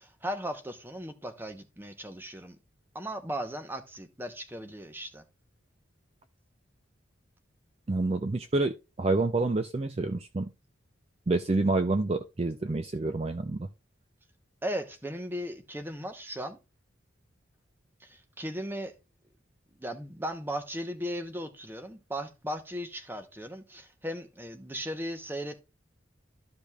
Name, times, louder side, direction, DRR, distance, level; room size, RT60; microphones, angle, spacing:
voice 1, 0.0-2.6 2.9-5.2 14.6-16.6 18.0-18.9 19.8-25.6, equal, 10° right, 0.8 m, -37 dB
voice 2, 7.9-10.5 11.3-13.7, right 2 dB, 30° right, 0.4 m, -28 dB
13.5 x 5.2 x 2.3 m
head